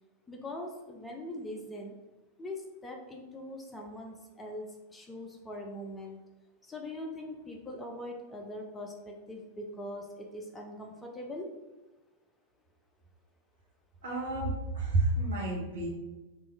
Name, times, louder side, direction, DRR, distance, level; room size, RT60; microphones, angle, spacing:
voice 1, 0.3-2.0 2.4-4.7 4.9-6.2 6.6-11.5, left 1 dB, 10° left, 1 dB, 0.5 m, -42 dB
voice 2, 14.0-15.9, right 2 dB, 60° right, -4 dB, 1.3 m, -30 dB
3.0 x 2.6 x 3.2 m, 1.1 s
figure-of-eight pair, 90°, 0 cm